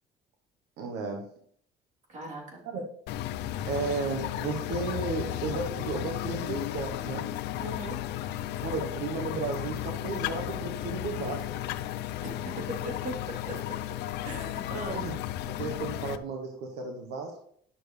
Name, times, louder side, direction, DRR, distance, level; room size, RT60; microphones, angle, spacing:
voice 1, 0.8-1.3 2.6-2.8 3.7-7.3 8.6-11.5 14.9-15.1 15.5-17.4, right 4 dB, 80° right, 2 dB, 1.1 m, -34 dB
voice 2, 2.1-2.6 7.6-8.0 12.2-13.5 14.2-15.1, right 1 dB, 45° right, -3 dB, 3.5 m, -39 dB
sound 1, 3.1-16.2, left 12 dB, 80° left, 0.5 m, -34 dB
10.5 x 6.7 x 3.3 m, 0.62 s
cardioid pair, 110°, 17 cm